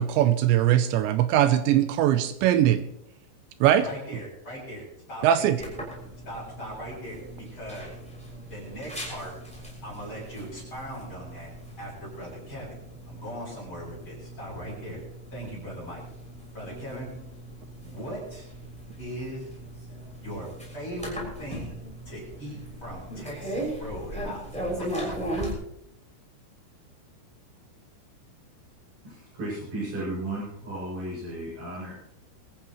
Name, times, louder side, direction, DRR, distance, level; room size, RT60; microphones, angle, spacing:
voice 1, 0.0-2.8 3.6-3.9 5.2-5.6, right 11 dB, 80° right, 11 dB, 2.7 m, -21 dB
voice 2, 3.8-5.7 6.2-7.9 8.5-9.3 9.8-11.5 11.8-12.8 13.1-15.0 15.3-16.0 16.5-17.1 17.8-18.5 19.0-19.5 20.2-21.8 22.1-24.4 24.8-24.9, equal, 25° left, -5 dB, 8.3 m, -39 dB
sound 1, 5.6-25.5, right 1 dB, ahead, 6.0 m, -38 dB
voice 3, 29.0-31.9, right 1 dB, 50° right, -9 dB, 9.7 m, -34 dB
24.5 x 14.5 x 3.2 m, 0.78 s
omnidirectional pair, 5.6 m